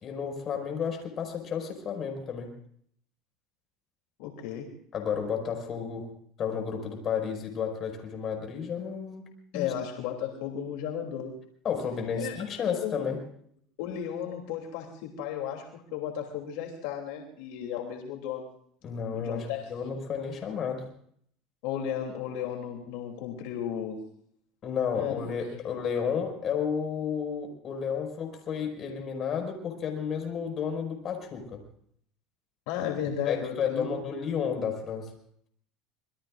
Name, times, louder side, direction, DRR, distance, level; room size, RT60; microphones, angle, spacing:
voice 1, 0.0-2.5 4.9-6.1 6.4-9.2 9.5-9.7 11.6-13.2 18.8-20.9 24.6-31.6 33.3-35.1, left 7 dB, 35° left, 3 dB, 5.3 m, -32 dB
voice 2, 4.2-4.7 9.5-11.4 12.2-13.0 13.8-18.5 19.1-19.7 21.6-24.0 24.9-25.6 32.7-34.1, left 9 dB, 75° left, 1 dB, 3.0 m, -34 dB
26.5 x 21.5 x 2.5 m, 0.64 s
cardioid pair, 140°, 0 cm